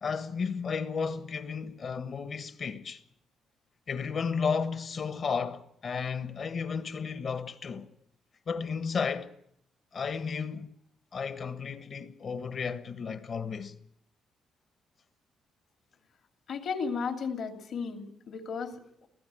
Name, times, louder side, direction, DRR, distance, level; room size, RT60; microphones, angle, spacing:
voice 1, 0.0-3.0 3.9-7.9 8.5-9.3 9.9-10.7 11.1-13.7, left 5 dB, 50° left, 1.4 m, -33 dB
voice 2, 16.5-19.1, left 5 dB, 65° left, 2.7 m, -34 dB
24.0 x 16.0 x 7.7 m
cardioid pair, 90°, 0 cm